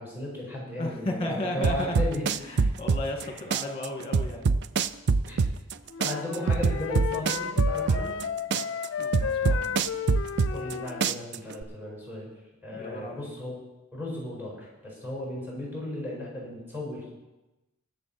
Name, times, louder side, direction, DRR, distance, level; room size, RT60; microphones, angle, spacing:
voice 1, 0.0-2.2 3.2-3.3 5.3-5.4 6.0-8.1 10.5-12.3 12.6-13.5 13.9-17.1, left 1 dB, 10° right, -4 dB, 5.1 m, -35 dB
voice 2, 0.8-2.0 2.3-4.6 8.5-8.6 9.0-9.8 12.7-13.3, left 1 dB, 25° left, 2 dB, 2.0 m, -34 dB
sound 1, 1.6-3.2 3.5-5.7 6.0-8.2 8.5-10.7 11.0-11.6, right 4 dB, 50° right, 0.4 m, -24 dB
Wind instrument woodwind instrument, 5.9-11.2, left 7 dB, 60° left, 0.5 m, -33 dB
20.5 x 7.1 x 4.4 m, 1.0 s
head